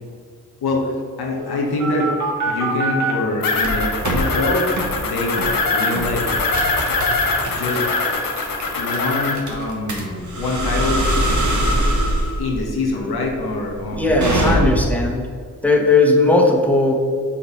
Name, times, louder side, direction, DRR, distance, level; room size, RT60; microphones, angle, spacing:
voice 1, 0.6-2.1 2.5-4.6 5.0-5.4 5.7-6.3 7.5-7.8 8.8-11.0 12.4-14.7, left 2 dB, 85° left, -1 dB, 1.2 m, -24 dB
sound 1, 1.3-3.1 3.6-4.2 4.8-4.9 5.4-5.6 6.0-15.0, right 1 dB, 50° right, 1.5 m, -23 dB
sound 2, 3.4-9.3, left 3 dB, 65° left, 1.1 m, -22 dB
voice 2, 13.9-15.3 15.6-16.9, left 2 dB, 5° left, 0 dB, 1.3 m, -17 dB
6.1 x 4.1 x 4.6 m, 2.1 s
cardioid pair, 45°, 37 cm